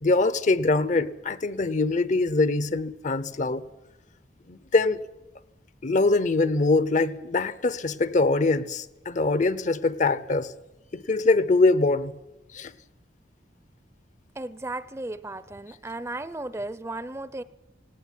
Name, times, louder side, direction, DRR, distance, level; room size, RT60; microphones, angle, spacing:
voice 1, 0.0-3.6 4.5-5.0 5.8-10.5 10.9-12.2 12.5-12.7, left 3 dB, 45° left, 0.8 m, -23 dB
voice 2, 14.3-17.4, right 2 dB, 15° right, 0.6 m, -35 dB
18.5 x 18.0 x 9.3 m
head